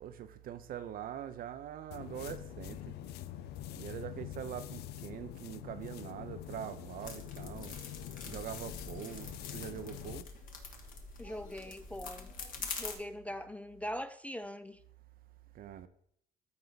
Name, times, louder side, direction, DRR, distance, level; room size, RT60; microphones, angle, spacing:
voice 1, 0.0-2.9 3.8-7.8 8.3-10.3 15.5-15.9, right 10 dB, 60° right, 0.6 m, -43 dB
sound 1, 1.9-10.3, left 14 dB, 75° left, 0.4 m, -45 dB
sound 2, 7.0-12.9, left 5 dB, 55° left, 1.5 m, -45 dB
voice 2, 11.2-12.3 12.8-14.8, equal, 10° left, 0.3 m, -41 dB
13.0 x 4.5 x 4.0 m
cardioid pair, 110°, 17 cm